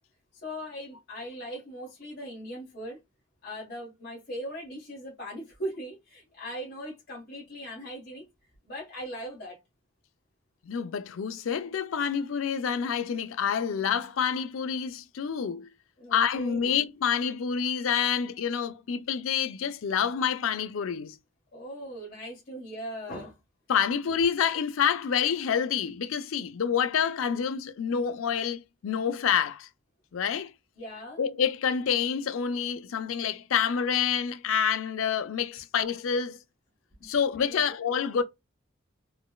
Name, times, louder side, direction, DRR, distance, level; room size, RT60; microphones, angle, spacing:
voice 1, 0.3-3.0 3.4-8.3 8.6-9.6 16.0-16.8 21.5-23.4 30.8-31.2 37.0-37.1 37.4-37.6 38.1-38.2, equal, 55° left, 1.5 m, -39 dB
voice 2, 10.6-15.7 16.1-21.2 23.7-29.7 30.1-30.5 31.2-36.4 37.0-38.2, left 7 dB, 85° left, 0.4 m, -28 dB
4.0 x 2.3 x 2.3 m
head